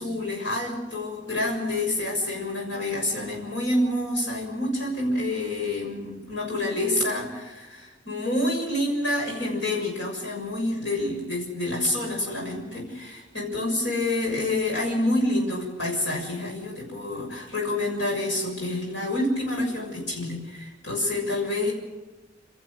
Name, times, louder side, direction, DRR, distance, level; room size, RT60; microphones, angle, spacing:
voice 1, 0.0-21.7, left 1 dB, 90° left, -1 dB, 7.0 m, -28 dB
30.0 x 14.5 x 6.7 m, 1.2 s
head